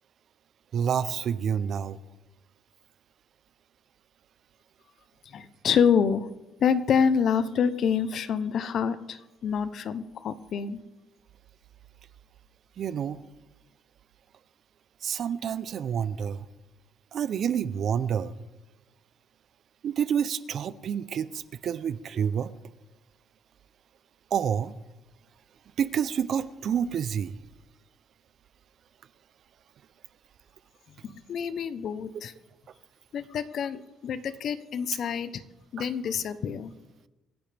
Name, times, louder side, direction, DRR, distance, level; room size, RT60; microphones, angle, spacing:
voice 1, 0.7-2.0 12.8-13.2 15.0-16.5 17.1-18.4 19.8-22.5 24.3-24.7 25.8-27.4 35.8-35.9, right 8 dB, 55° right, 16 dB, 0.6 m, -28 dB
voice 2, 5.3-6.3 6.6-10.8 31.0-32.3 33.1-35.4 35.7-36.7, left 7 dB, 55° left, 13 dB, 0.9 m, -27 dB
25.5 x 11.0 x 3.5 m, 1.0 s
cardioid pair, 125°, 0 cm